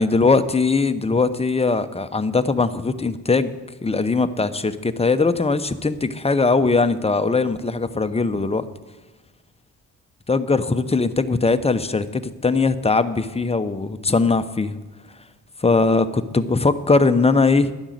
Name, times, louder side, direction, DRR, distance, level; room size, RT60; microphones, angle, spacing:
voice 1, 0.0-3.5 3.8-8.7 10.3-14.8 15.6-17.7, left 3 dB, 15° left, 11 dB, 0.7 m, -20 dB
11.5 x 6.2 x 9.2 m, 1.2 s
cardioid pair, 80°, 39 cm